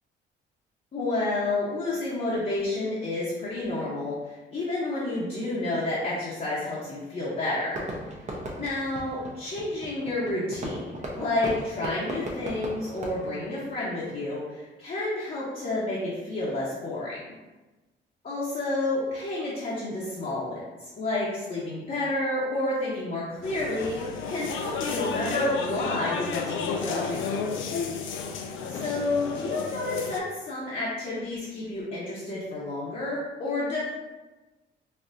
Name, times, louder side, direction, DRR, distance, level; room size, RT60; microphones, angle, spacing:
voice 1, 0.9-7.8 8.6-17.3 18.2-27.3 28.7-33.8, left 2 dB, 40° left, -7 dB, 0.9 m, -30 dB
Fireworks, 7.7-14.2, right 1 dB, 35° right, 0.8 m, -38 dB
sound 1, 23.4-30.2, left 5 dB, 80° left, 0.4 m, -32 dB
4.3 x 2.3 x 2.6 m, 1.1 s
cardioid pair, 90°, 20 cm